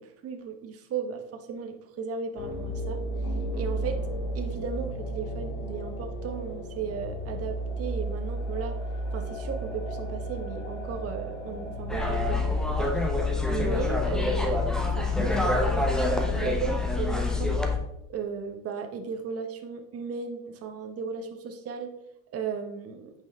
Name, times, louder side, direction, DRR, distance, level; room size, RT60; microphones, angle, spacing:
voice 1, 0.0-3.0 3.5-4.0 4.3-8.8 9.1-13.0 13.5-17.6 18.1-21.9 22.3-23.1, right 6 dB, 30° right, 5 dB, 1.2 m, -36 dB
sound 1, 2.4-12.7, right 1 dB, 45° left, 2.1 m, -33 dB
sound 2, 11.9-17.8, left 3 dB, ahead, 0.9 m, -26 dB
8.7 x 5.8 x 3.7 m, 0.83 s
supercardioid pair, 120°, 45 cm